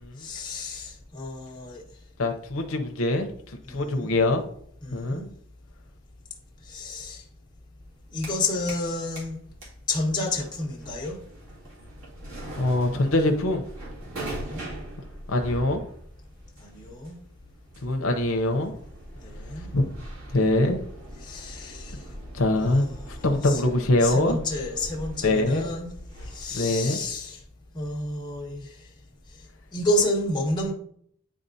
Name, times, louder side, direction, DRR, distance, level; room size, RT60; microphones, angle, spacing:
voice 1, 0.2-1.8 3.7-4.2 4.8-5.3 6.7-7.2 8.1-9.4 9.9-11.2 14.3-14.6 16.6-17.2 19.2-19.7 21.2-22.0 22.5-23.1 23.4-23.6 24.0-25.9 26.2-27.4 27.7-28.7 29.7-30.7, left 2 dB, 20° left, -1 dB, 1.2 m, -30 dB
voice 2, 2.2-4.4 4.9-5.3 12.6-13.6 15.3-15.8 17.8-18.7 19.7-19.9 20.3-20.8 22.3-24.4 25.2-25.7 26.5-27.0, left 2 dB, 75° left, 4 dB, 0.7 m, -24 dB
sound 1, 7.8-8.9 9.2-26.6, right 1 dB, 85° right, 2.3 m, -41 dB
9.5 x 3.6 x 2.7 m, 0.65 s
head